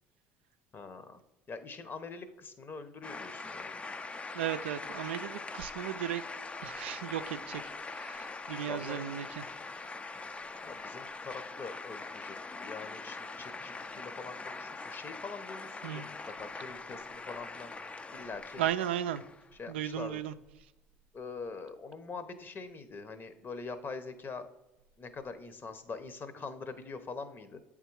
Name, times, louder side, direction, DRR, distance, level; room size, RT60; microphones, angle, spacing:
voice 1, 0.7-1.2 1.5-3.8 8.7-9.1 10.6-17.7 18.1-18.6 19.5-20.2 21.1-24.5 25.0-27.6, left 4 dB, 35° left, 11 dB, 0.8 m, -44 dB
sound 1, 3.0-19.5, left 3 dB, 20° left, 0.4 m, -43 dB
voice 2, 4.3-6.2 6.6-7.6 7.9-9.5 15.8-16.1 18.6-19.2 19.7-20.3, right 11 dB, 90° right, 11 dB, 0.3 m, -35 dB
8.1 x 3.7 x 4.6 m, 0.94 s
hypercardioid pair, 75°, 6 cm